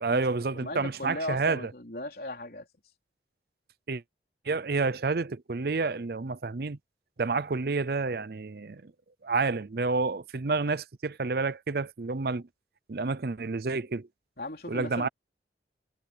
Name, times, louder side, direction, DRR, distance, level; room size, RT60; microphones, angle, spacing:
voice 1, 0.0-1.7 3.9-4.0 4.5-6.8 7.2-8.9 9.2-12.4 12.9-14.1 14.7-15.1, right 4 dB, 60° right, 0.6 m, -29 dB
voice 2, 0.5-2.7 14.4-15.1, left 1 dB, 55° left, 3.8 m, -37 dB
head